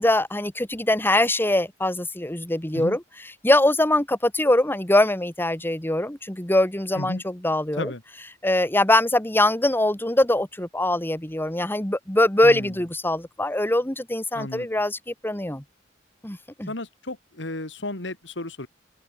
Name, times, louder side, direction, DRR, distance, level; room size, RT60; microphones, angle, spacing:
voice 1, 0.0-3.0 3.4-7.9 8.4-15.6 16.2-16.7, left 1 dB, 10° left, 1.9 m, -22 dB
voice 2, 12.4-12.8 14.3-14.7 16.7-18.7, left 2 dB, 70° left, 2.9 m, -33 dB
open air
head